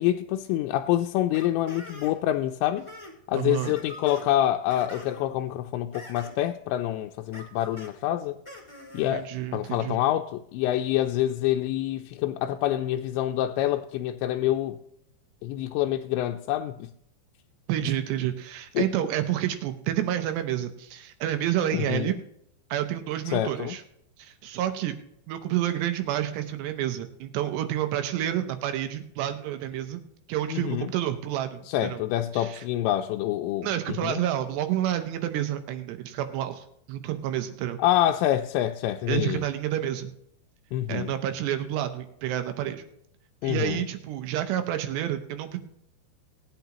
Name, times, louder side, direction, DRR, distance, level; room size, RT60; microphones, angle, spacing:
voice 1, 0.0-2.9 3.3-8.4 8.9-14.8 15.4-16.9 18.8-18.9 21.7-22.2 23.3-23.8 30.5-30.9 31.7-34.2 37.8-39.4 40.7-41.1 43.4-43.9, left 13 dB, 90° left, 2.8 m, -26 dB
sound 1, 1.3-2.3 2.6-3.1 3.6-4.3 4.7-5.3 5.9-6.5 7.3-7.9 8.4-9.1, left 1 dB, 15° left, 0.9 m, -44 dB
voice 2, 3.3-3.7 9.1-10.0 17.7-22.1 22.7-23.8 24.2-25.0 25.3-30.0 30.3-32.0 32.3-32.6 33.6-37.8 39.1-40.1 40.9-42.8 43.4-45.6, right 12 dB, 80° right, 2.9 m, -29 dB
18.5 x 9.3 x 3.0 m
omnidirectional pair, 5.0 m